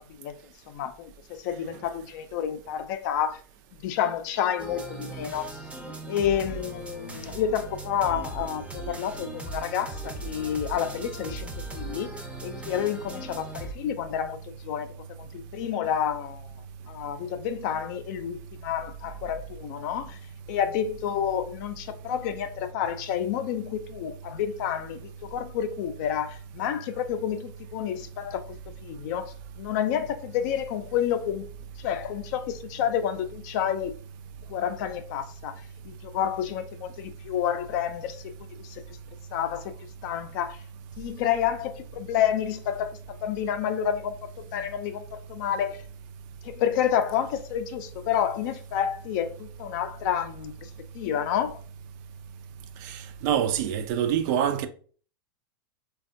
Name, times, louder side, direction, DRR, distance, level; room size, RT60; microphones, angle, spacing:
voice 1, 0.7-3.4 3.8-5.7 6.1-12.1 12.4-16.5 16.9-20.2 20.5-28.5 28.8-31.5 31.8-34.0 34.5-35.6 35.8-39.0 39.3-39.7 40.0-40.6 41.0-45.8 46.4-51.6, left 9 dB, 55° left, 0.5 m, -29 dB
sound 1, 4.6-13.7, right 2 dB, 10° right, 0.6 m, -39 dB
voice 2, 52.8-54.7, right 9 dB, 55° right, 0.4 m, -26 dB
3.3 x 2.3 x 2.5 m
hypercardioid pair, 115°, 12 cm